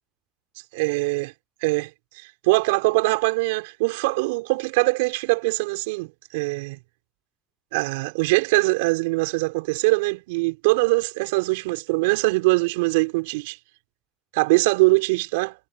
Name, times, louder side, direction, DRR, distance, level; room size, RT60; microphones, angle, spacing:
voice 1, 0.7-1.3 1.6-6.8 7.7-13.6 14.3-15.6, right 25 dB, 80° right, 5.9 m, -22 dB
hypercardioid pair, 80°, 0 cm